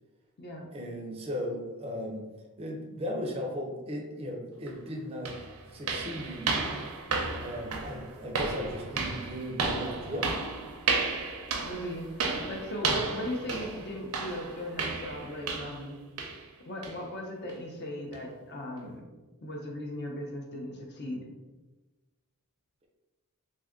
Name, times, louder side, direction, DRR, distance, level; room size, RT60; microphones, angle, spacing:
voice 1, 0.7-2.3 2.6-5.4 5.7-6.6 7.3-10.5, equal, 25° right, 0 dB, 0.4 m, -37 dB
sound 1, 4.7-4.8 5.3-15.9 16.2-16.5 16.8-17.0 17.5-17.6 18.1-18.2, right 4 dB, 80° right, 0.5 m, -33 dB
voice 2, 11.6-16.0 16.6-19.0 19.4-21.3, equal, 45° left, 0 dB, 0.6 m, -38 dB
2.6 x 2.4 x 3.6 m, 1.2 s
head